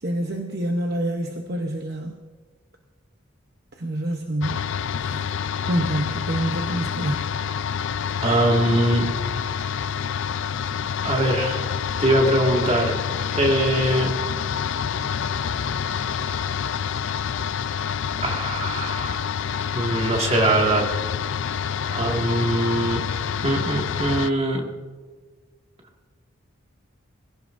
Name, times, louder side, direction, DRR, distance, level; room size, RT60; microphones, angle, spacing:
voice 1, 0.0-2.2 3.8-4.6 5.0-5.2 5.7-7.3, right 1 dB, 50° right, 2 dB, 0.9 m, -27 dB
sound 1, 4.4-24.3, left 7 dB, 60° left, 0.4 m, -27 dB
voice 2, 8.2-9.1 11.0-11.7 12.0-12.9 13.3-14.1 18.2-19.2 19.7-20.9 21.9-23.0 23.4-24.6, right 1 dB, 30° right, 0 dB, 1.9 m, -22 dB
21.0 x 16.0 x 2.6 m, 1.5 s
head